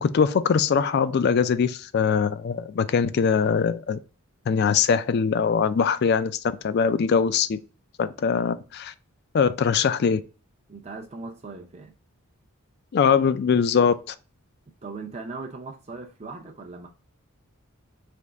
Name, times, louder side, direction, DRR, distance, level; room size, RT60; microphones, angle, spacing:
voice 1, 0.0-4.0 4.5-7.6 8.0-8.9 9.3-10.2 12.9-14.1, left 6 dB, 50° left, 0.3 m, -22 dB
voice 2, 10.7-11.9 14.8-16.9, right 3 dB, 30° right, 0.5 m, -38 dB
3.4 x 3.1 x 3.8 m
head